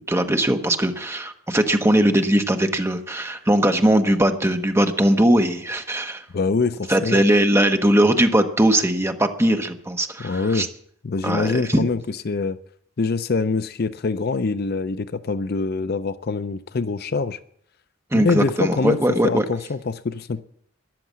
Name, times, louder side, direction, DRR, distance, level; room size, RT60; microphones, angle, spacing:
voice 1, 0.1-6.2 6.9-10.7 11.2-11.8 18.1-19.4, right 1 dB, 15° right, 1.2 m, -20 dB
voice 2, 6.3-7.2 10.2-10.7 11.0-12.6 13.0-17.4 18.1-19.0 19.2-20.4, left 4 dB, 50° left, 0.5 m, -24 dB
13.5 x 11.0 x 7.5 m
head